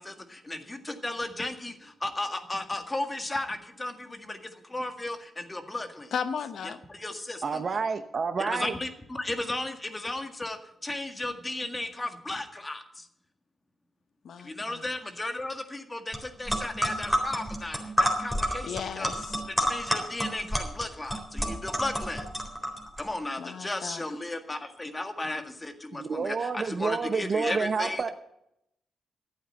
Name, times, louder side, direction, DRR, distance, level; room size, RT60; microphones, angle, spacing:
voice 1, 0.0-6.1 6.6-7.6 8.4-13.1 14.4-19.1 19.5-22.3 23.0-28.1, left 2 dB, 25° left, 7 dB, 1.8 m, -35 dB
voice 2, 6.1-6.8 14.2-14.8 18.6-19.4 23.4-24.1, left 7 dB, 75° left, 12 dB, 0.9 m, -35 dB
voice 3, 7.4-8.7 25.9-28.1, right 5 dB, 55° right, 9 dB, 0.9 m, -29 dB
sound 1, 16.1-16.2 16.5-23.0, equal, 5° left, 3.9 m, -29 dB
12.0 x 8.7 x 7.8 m, 0.78 s
cardioid pair, 65°, 0 cm